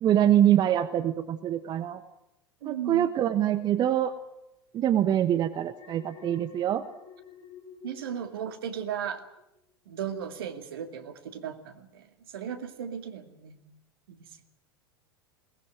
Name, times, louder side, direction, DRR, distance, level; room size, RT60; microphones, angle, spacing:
voice 1, 0.0-2.0 2.6-4.2 4.7-6.8, right 11 dB, 35° right, 11 dB, 1.2 m, -24 dB
voice 2, 2.6-3.1 7.8-9.2 9.9-13.6 14.1-14.4, right 8 dB, 65° right, 7 dB, 2.3 m, -36 dB
Alarm, 5.7-9.0 9.4-9.7, left 6 dB, 35° left, 4.7 m, -50 dB
21.5 x 19.5 x 9.4 m, 0.85 s
figure-of-eight pair, 80°, 13 cm